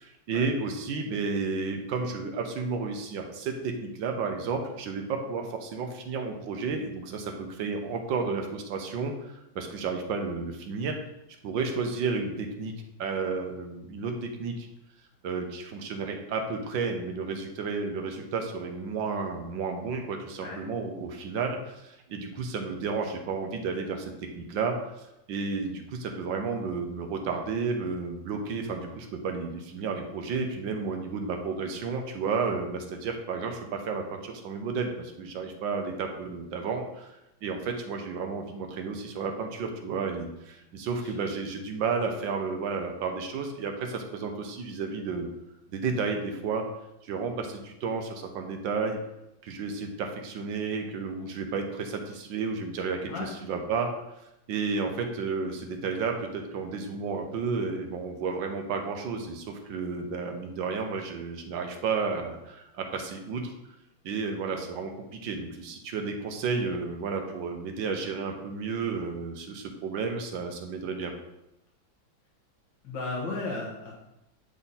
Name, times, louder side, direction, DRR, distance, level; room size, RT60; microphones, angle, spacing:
voice 1, 0.0-11.0 11.4-12.7 13.0-14.7 15.2-45.3 45.7-46.6 47.0-49.0 49.4-53.9 54.5-63.5 64.0-71.1, right 4 dB, 75° right, 3 dB, 1.5 m, -32 dB
voice 2, 72.8-73.9, left 3 dB, 70° left, -4 dB, 2.1 m, -34 dB
9.2 x 3.7 x 4.2 m, 0.89 s
omnidirectional pair, 2.1 m